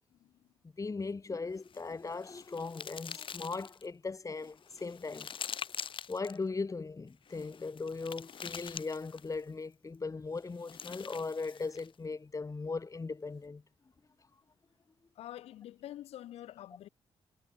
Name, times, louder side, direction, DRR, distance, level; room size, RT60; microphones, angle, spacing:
voice 1, 0.8-5.3 6.1-13.6, left 4 dB, 35° left, 7.2 m, -38 dB
sound 1, 1.6-3.9 4.4-6.4 7.3-9.4 10.4-11.9, left 7 dB, 55° left, 2.6 m, -45 dB
voice 2, 15.2-16.9, left 13 dB, 90° left, 6.6 m, -46 dB
cardioid pair, 70°, 10 cm